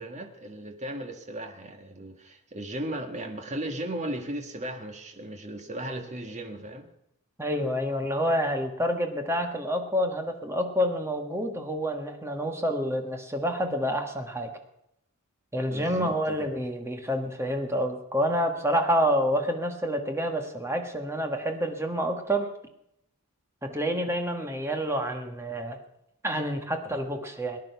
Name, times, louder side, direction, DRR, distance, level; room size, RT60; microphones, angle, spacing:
voice 1, 0.0-6.9 15.7-16.5, right 1 dB, 35° right, 4 dB, 1.5 m, -36 dB
voice 2, 7.4-14.5 15.5-22.5 23.6-25.8 26.2-27.6, equal, 10° right, 5 dB, 1.5 m, -28 dB
19.0 x 10.5 x 5.8 m, 0.78 s
head